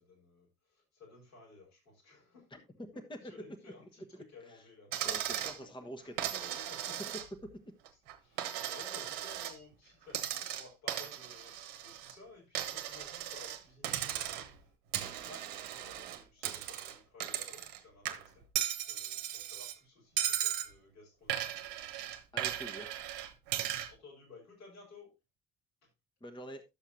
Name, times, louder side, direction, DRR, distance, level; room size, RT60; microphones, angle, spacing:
voice 1, 0.0-7.4 7.9-18.4 18.9-21.8 23.8-25.1, left 3 dB, 80° left, 4.2 m, -56 dB
voice 2, 4.1-4.6 5.0-6.6 22.3-22.9 26.2-26.6, equal, 10° left, 1.2 m, -47 dB
Coin (dropping), 4.9-5.6 6.2-7.5 7.9-9.6 10.1-12.1 12.6-13.6 13.8-14.6 14.9-17.8 18.1-19.8 20.2-20.7 21.3-23.9, right 11 dB, 60° right, 1.1 m, -37 dB
12.0 x 7.2 x 2.7 m
figure-of-eight pair, 45°, 42 cm